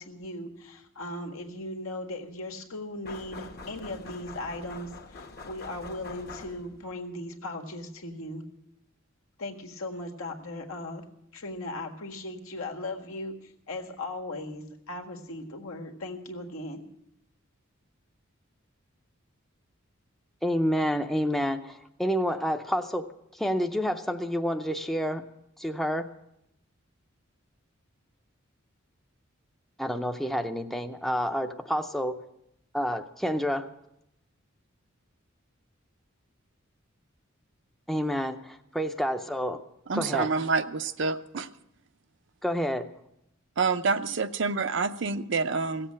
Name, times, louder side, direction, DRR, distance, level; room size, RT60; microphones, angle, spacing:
voice 1, 0.0-8.4 9.4-11.0 11.3-16.8, left 1 dB, 85° left, 1 dB, 1.7 m, -38 dB
sound 1, 3.0-6.9, left 3 dB, 50° left, 1.1 m, -44 dB
voice 2, 20.4-23.1 23.3-25.2 25.6-26.1 29.8-32.2 32.7-33.7 37.9-39.6 39.9-40.3 42.4-42.9, equal, ahead, 6 dB, 0.6 m, -29 dB
voice 3, 39.9-41.5 43.6-45.9, right 4 dB, 60° right, 11 dB, 0.6 m, -27 dB
16.5 x 7.6 x 8.6 m, 0.82 s
head